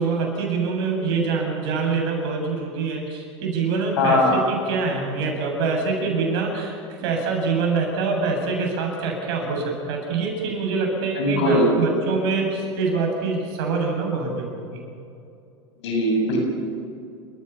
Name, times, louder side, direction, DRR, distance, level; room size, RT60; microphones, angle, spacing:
voice 1, 0.0-14.8, right 4 dB, 70° right, 1 dB, 7.9 m, -25 dB
voice 2, 4.0-4.3 11.2-11.7 15.8-16.4, left 1 dB, 80° left, 1 dB, 7.7 m, -20 dB
29.0 x 15.0 x 7.2 m, 2.6 s
hypercardioid pair, 95°, 15 cm